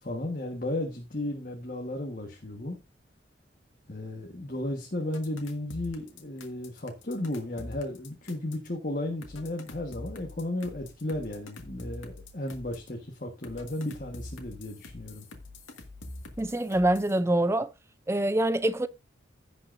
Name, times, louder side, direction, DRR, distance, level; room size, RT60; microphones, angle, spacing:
voice 1, 0.0-2.8 3.9-15.2, left 1 dB, 45° left, 1.3 m, -34 dB
sound 1, 5.1-8.7 9.2-12.9 13.4-17.2, left 2 dB, 85° left, 1.9 m, -44 dB
voice 2, 16.4-17.7 18.1-18.9, right 1 dB, 15° right, 0.4 m, -25 dB
16.0 x 5.8 x 2.6 m
head